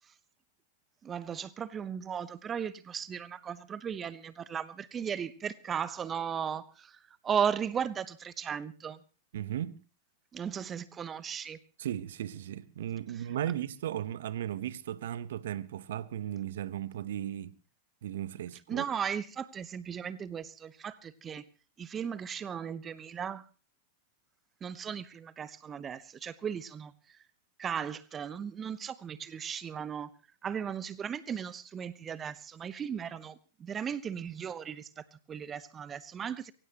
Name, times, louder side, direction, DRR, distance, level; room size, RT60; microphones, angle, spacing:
voice 1, 1.0-9.0 10.3-11.6 18.7-21.4 21.8-23.4 24.6-26.9 27.6-30.1 30.4-36.5, right 7 dB, 25° right, 0.9 m, -36 dB
voice 2, 9.3-9.8 11.8-17.5 18.0-18.8, right 11 dB, 65° right, 1.0 m, -36 dB
23.5 x 16.5 x 3.0 m
hypercardioid pair, 100°, 0 cm